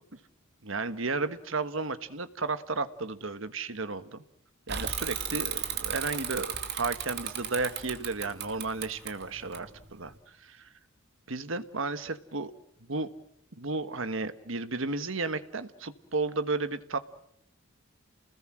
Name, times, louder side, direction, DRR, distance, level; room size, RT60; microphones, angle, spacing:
voice 1, 0.6-4.2 4.7-10.7 11.3-12.5 12.9-13.1 13.6-17.0, right 3 dB, 65° right, 12 dB, 1.5 m, -33 dB
Bicycle / Mechanisms, 4.7-10.1, right 8 dB, 50° right, 2.5 m, -35 dB
29.5 x 21.0 x 7.7 m, 0.76 s
head